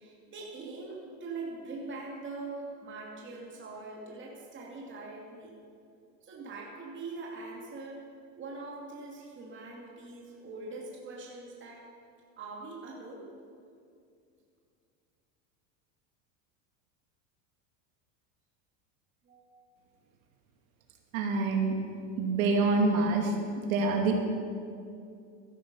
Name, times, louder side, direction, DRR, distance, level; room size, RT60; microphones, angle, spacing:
voice 1, 0.0-5.5 6.2-8.0 8.4-11.8 12.4-13.3 19.2-19.6, right 3 dB, 30° right, -3 dB, 2.6 m, -42 dB
voice 2, 21.1-21.8 22.2-23.3 23.7-24.1, right 3 dB, 80° right, 3 dB, 2.5 m, -26 dB
14.5 x 12.0 x 5.5 m, 2.4 s
supercardioid pair, 130°, 40 cm